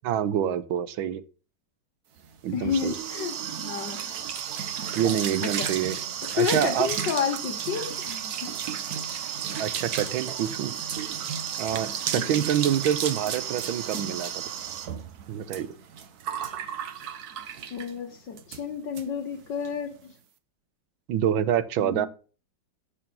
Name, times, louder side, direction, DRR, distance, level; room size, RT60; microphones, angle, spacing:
voice 1, 0.0-1.2 2.4-2.9 4.9-6.0 6.3-6.9 9.6-10.7 11.6-14.4 15.3-15.7 21.1-22.1, right 10 dB, 80° right, 14 dB, 1.6 m, -26 dB
sound 1, 2.2-18.0 18.4-18.6 19.0-19.1 19.3-19.7, right 8 dB, 55° right, 1.3 m, -33 dB
voice 2, 2.5-3.4 3.6-4.1 5.4-5.7 6.4-8.5 12.2-12.4 17.7-20.1 21.8-22.1, left 7 dB, 65° left, 7 dB, 1.8 m, -31 dB
8.6 x 6.9 x 5.3 m, 0.37 s
omnidirectional pair, 2.2 m